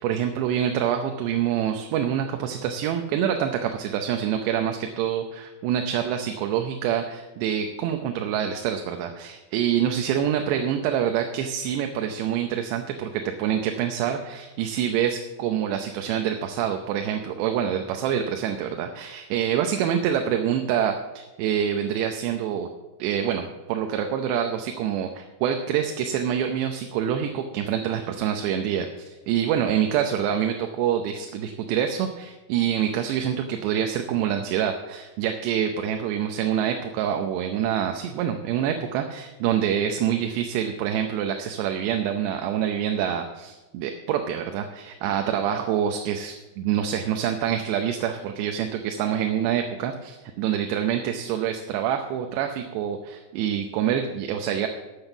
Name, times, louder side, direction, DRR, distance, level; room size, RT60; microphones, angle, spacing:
voice 1, 0.0-22.7 23.0-54.7, right 9 dB, 80° right, 5 dB, 2.9 m, -26 dB
12.0 x 7.8 x 7.1 m, 1.1 s
omnidirectional pair, 4.9 m